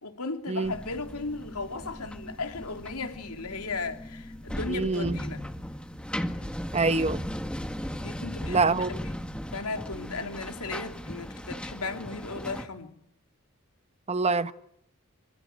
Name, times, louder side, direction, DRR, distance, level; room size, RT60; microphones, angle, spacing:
voice 1, 0.0-5.4 7.9-9.2 9.5-12.9, left 3 dB, 85° left, 3.4 m, -36 dB
sound 1, 0.6-12.7, equal, 5° left, 1.8 m, -37 dB
voice 2, 4.7-5.2 6.7-7.2 8.5-8.9 14.1-14.5, right 3 dB, 30° right, 1.0 m, -25 dB
26.0 x 24.5 x 9.1 m
head